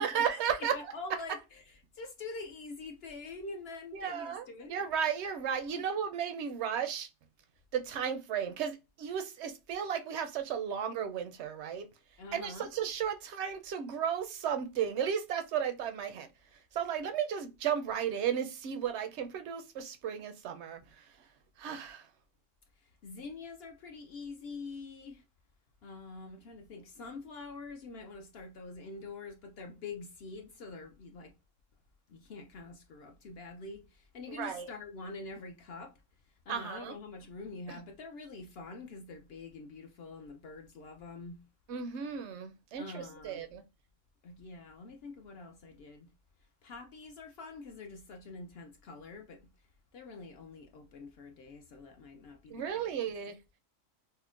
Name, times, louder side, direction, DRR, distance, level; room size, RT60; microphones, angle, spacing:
voice 1, 0.0-0.8 3.9-7.1 7.7-11.9 12.3-16.3 16.7-20.8 21.6-22.0 34.3-34.7 36.5-36.9 37.7-37.8 41.7-43.6 52.5-53.4, right 8 dB, 65° right, 0.8 m, -34 dB
voice 2, 0.6-4.8 5.8-5.9 12.2-12.7 23.0-25.2 25.8-31.3 32.1-35.9 36.5-41.4 42.8-43.4 44.2-46.1 46.6-49.4 49.9-52.9, left 3 dB, 65° left, 0.7 m, -45 dB
5.5 x 2.0 x 2.4 m
omnidirectional pair, 1.4 m